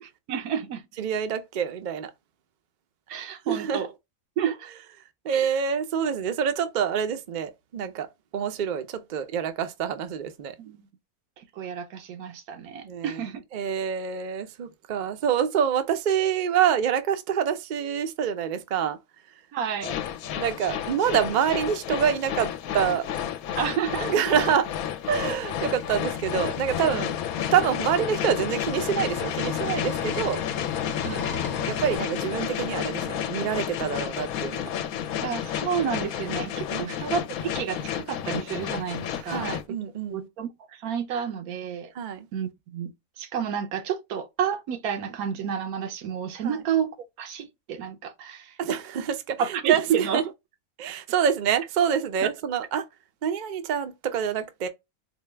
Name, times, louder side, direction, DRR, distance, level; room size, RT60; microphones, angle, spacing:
voice 1, 0.0-0.8 3.1-3.9 4.4-4.7 5.3-5.5 10.6-10.9 11.4-13.4 19.5-19.9 23.6-24.1 30.9-31.3 35.2-39.8 40.1-41.9 42.3-42.9 43.2-48.5 49.4-50.2, right 8 dB, 85° right, 1.2 m, -30 dB
voice 2, 1.0-2.1 3.5-3.9 5.2-8.1 8.3-10.5 12.8-13.2 13.5-19.0 20.3-23.0 24.0-24.7 25.1-27.1 27.5-30.4 31.7-34.7 36.7-36.9 39.2-40.3 41.9-42.3 46.4-46.6 48.6-50.2 50.8-52.9 53.2-54.7, right 8 dB, 60° right, 0.5 m, -26 dB
sound 1, 19.8-39.6, left 10 dB, 80° left, 1.0 m, -31 dB
sound 2, 25.0-32.0, left 6 dB, 50° left, 0.8 m, -37 dB
4.4 x 2.2 x 3.2 m
omnidirectional pair, 1.5 m